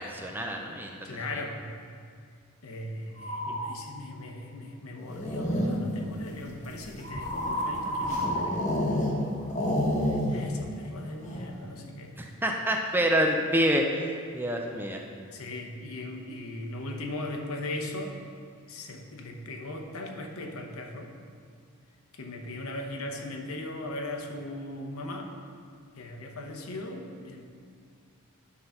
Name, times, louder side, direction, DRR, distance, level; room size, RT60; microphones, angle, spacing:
voice 1, 0.0-1.4 12.2-13.8 14.3-15.0, equal, 10° right, 2 dB, 0.5 m, -27 dB
voice 2, 1.0-1.7 2.6-8.6 10.0-12.1 15.3-18.2 18.7-21.1 22.1-25.3 25.9-27.4, left 1 dB, 80° left, 2 dB, 0.9 m, -38 dB
sound 1, 3.1-3.7 7.0-9.8, equal, 75° right, 1.8 m, -32 dB
sound 2, 5.0-6.0 6.6-9.2 9.5-10.6 10.8-10.9 11.2-11.6, left 1 dB, 35° left, 1.1 m, -29 dB
9.6 x 3.9 x 5.7 m, 2.1 s
head